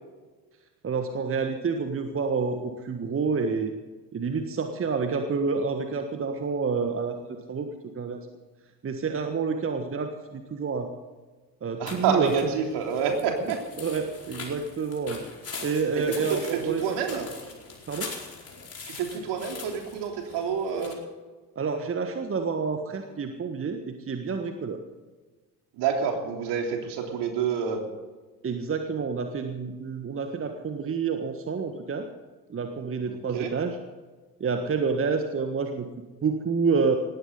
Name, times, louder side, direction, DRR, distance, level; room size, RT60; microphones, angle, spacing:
voice 1, 0.8-3.7 4.1-7.7 7.9-8.3 8.8-10.9 11.6-12.3 13.8-15.2 15.6-17.1 17.9-18.1 21.5-24.8 28.4-32.1 32.5-33.8 34.4-35.9 36.2-37.0, right 5 dB, 25° right, 6 dB, 1.5 m, -28 dB
voice 2, 11.8-13.6 16.0-17.3 18.9-21.0 25.8-27.8 33.0-33.5, right 6 dB, 55° right, 2 dB, 3.5 m, -28 dB
sound 1, 11.9-20.9, left 4 dB, 30° left, 4.6 m, -42 dB
19.5 x 16.0 x 4.0 m, 1.3 s
figure-of-eight pair, 55°, 49 cm